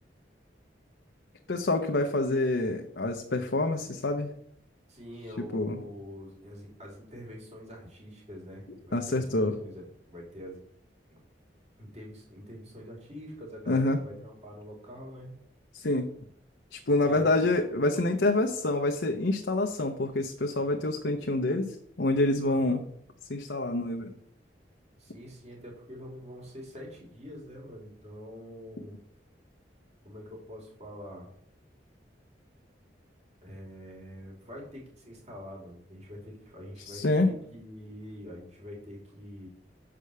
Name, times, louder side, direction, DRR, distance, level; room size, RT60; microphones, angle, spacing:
voice 1, 1.5-4.3 5.4-5.8 8.9-9.6 13.7-14.0 15.7-16.1 16.7-22.8 23.3-24.1 36.9-37.3, left 2 dB, 70° left, 3 dB, 0.7 m, -27 dB
voice 2, 4.9-10.6 11.8-15.4 17.0-17.5 22.4-22.8 25.0-29.0 30.0-31.3 33.4-39.5, equal, 40° right, -2 dB, 2.8 m, -45 dB
6.8 x 5.0 x 6.7 m, 0.68 s
head